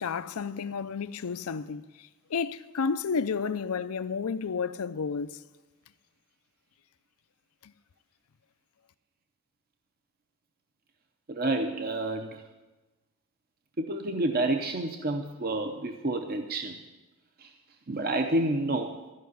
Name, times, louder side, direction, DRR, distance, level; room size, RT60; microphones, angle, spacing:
voice 1, 0.0-1.8 2.3-5.3, left 5 dB, 85° left, 0.5 m, -31 dB
voice 2, 11.3-12.4 13.8-16.8 17.4-17.5 17.9-19.0, right 2 dB, 45° right, 0.7 m, -29 dB
14.0 x 5.6 x 9.4 m
head